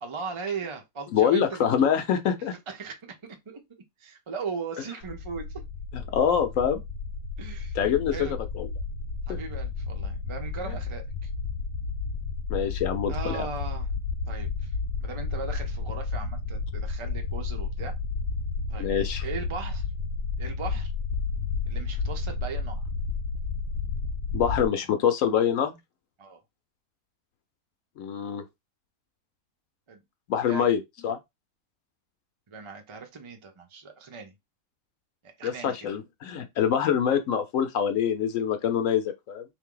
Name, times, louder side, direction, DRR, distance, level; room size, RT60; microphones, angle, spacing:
voice 1, 0.0-1.7 2.7-3.6 4.0-5.6 7.4-7.8 8.1-8.3 9.3-11.3 13.1-13.9 14.3-14.7 15.0-17.9 18.7-18.9 19.2-19.9 20.4-20.9 21.7-22.8 26.2-26.4 29.9-30.0 30.5-30.7 32.5-34.3 35.2-36.0, right 5 dB, 45° right, 0.4 m, -38 dB
voice 2, 1.1-2.5 5.9-6.8 7.8-8.2 8.6-8.7 9.3-9.4 12.5-13.5 18.8-19.2 24.3-25.8 28.0-28.4 30.3-31.2 35.4-39.4, left 8 dB, 65° left, 1.0 m, -25 dB
sound 1, 5.0-24.7, left 4 dB, 90° left, 1.2 m, -32 dB
3.5 x 2.7 x 3.7 m
omnidirectional pair, 1.6 m